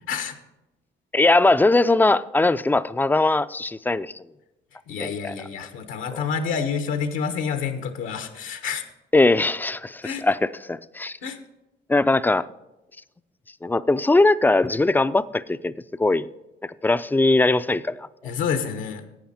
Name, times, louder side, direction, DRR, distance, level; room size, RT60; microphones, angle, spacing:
voice 1, 1.1-4.2 5.0-5.3 6.1-6.2 9.1-11.2 11.9-12.5 13.6-15.7 16.0-16.3 16.6-18.1, left 2 dB, 10° left, 0.3 m, -20 dB
voice 2, 4.9-8.8 10.0-10.2 11.2-11.4 18.2-19.0, left 6 dB, 85° left, 1.2 m, -28 dB
11.5 x 8.6 x 4.3 m
cardioid pair, 90°, 20 cm